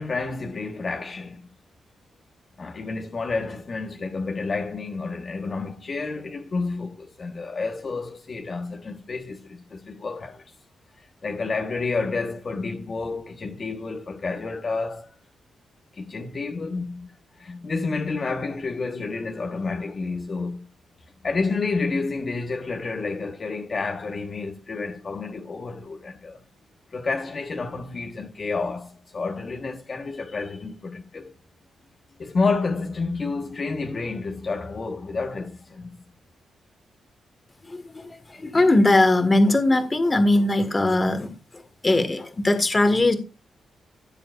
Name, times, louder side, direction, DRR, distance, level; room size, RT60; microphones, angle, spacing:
voice 1, 0.0-1.4 2.6-10.5 11.0-15.1 15.9-17.1 17.4-20.7 21.2-26.4 26.9-31.3 32.2-36.0, left 4 dB, 40° left, 1.3 m, -30 dB
voice 2, 37.7-41.3 41.8-43.2, left 2 dB, 20° left, 1.7 m, -20 dB
14.5 x 7.4 x 2.5 m
cardioid pair, 120°, 0 cm